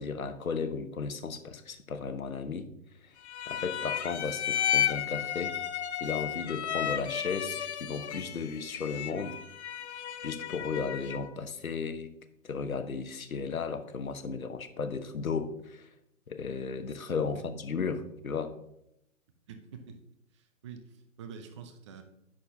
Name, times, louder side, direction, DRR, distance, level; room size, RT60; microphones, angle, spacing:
voice 1, 0.0-2.7 3.0-3.1 3.5-5.6 6.0-9.4 10.2-12.1 12.4-15.9 16.3-18.5, left 5 dB, 75° left, 9 dB, 1.0 m, -35 dB
sound 1, 3.2-11.3, left 10 dB, 55° left, 0.7 m, -33 dB
voice 2, 19.5-20.0 20.3-22.0, right 6 dB, 20° right, 6 dB, 0.6 m, -46 dB
9.7 x 6.4 x 2.8 m, 0.80 s
figure-of-eight pair, 130°, 42 cm